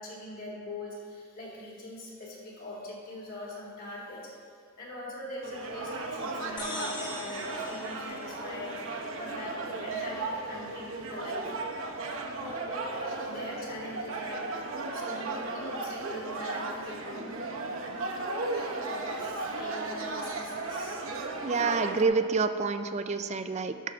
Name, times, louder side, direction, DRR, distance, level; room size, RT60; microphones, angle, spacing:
voice 1, 0.0-4.4 4.8-8.8 9.2-11.5 12.3-14.4 14.9-17.3 18.0-21.0, left 1 dB, 40° left, -4 dB, 2.3 m, -42 dB
sound 1, 5.4-22.0, right 3 dB, 60° right, 0.9 m, -35 dB
sound 2, 6.6-9.2, left 2 dB, 20° left, 0.9 m, -42 dB
voice 2, 21.4-23.9, right 4 dB, 30° right, 9 dB, 0.4 m, -28 dB
12.5 x 4.5 x 6.1 m, 2.2 s
head